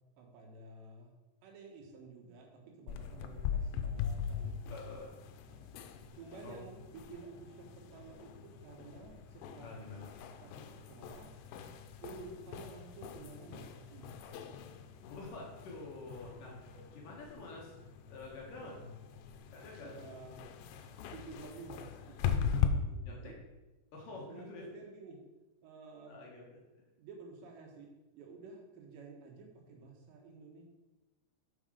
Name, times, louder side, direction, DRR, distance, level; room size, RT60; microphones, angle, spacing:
voice 1, 0.2-1.1 1.4-4.6 5.5-5.8 6.1-9.8 10.4-11.4 12.0-14.2 14.5-14.6 16.7-16.8 18.6-18.9 19.8-20.5 21.1-23.4 24.1-25.2 25.6-26.2 27.0-30.6, right 4 dB, 85° right, 1 dB, 3.5 m, -52 dB
sound 1, 2.9-22.7, left 8 dB, 90° left, 2.8 m, -40 dB
voice 2, 4.7-5.2 6.4-6.6 9.6-10.3 15.1-17.7 18.1-18.8 19.5-20.0 23.1-23.3 23.9-24.6 26.1-26.6, left 3 dB, 65° left, -2 dB, 2.4 m, -48 dB
7.0 x 5.8 x 4.9 m, 1.1 s
omnidirectional pair, 4.9 m